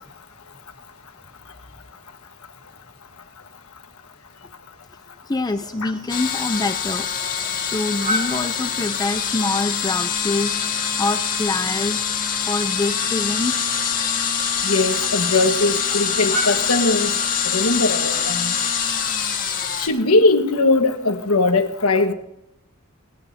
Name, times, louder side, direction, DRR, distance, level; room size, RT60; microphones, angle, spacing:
voice 1, 5.3-7.1 7.6-10.6 11.0-12.1 12.5-13.8, left 2 dB, 20° left, 0.5 m, -25 dB
sound 1, 5.5-18.3, equal, 35° right, 3.5 m, -36 dB
sound 2, 6.1-19.9, left 7 dB, 40° left, 1.8 m, -24 dB
voice 2, 14.6-17.1 17.5-18.5 19.8-22.1, left 2 dB, 80° left, 1.5 m, -20 dB
20.0 x 17.5 x 2.8 m
head